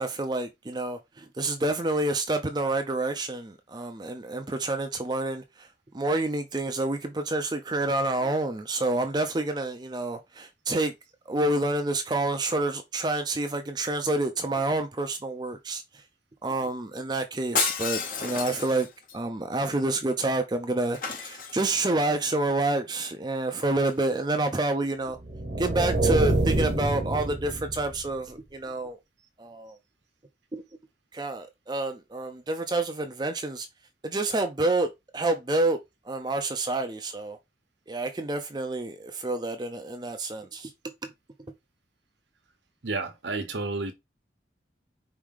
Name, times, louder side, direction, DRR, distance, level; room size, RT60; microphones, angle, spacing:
voice 1, 0.0-5.7 5.9-10.9 11.3-16.0 16.4-18.9 19.1-25.2 25.6-29.0 29.4-29.8 30.5-30.6 31.1-33.7 34.0-35.8 36.0-37.4 37.9-40.7, right 2 dB, 25° right, 0.5 m, -28 dB
Shatter, 17.5-19.1 20.9-22.0 23.8-24.1, left 6 dB, 50° left, 0.9 m, -31 dB
sound 1, 25.2-28.1, right 2 dB, 40° right, 0.9 m, -26 dB
voice 2, 42.8-43.9, right 3 dB, 85° right, 1.0 m, -31 dB
4.7 x 2.8 x 3.6 m
head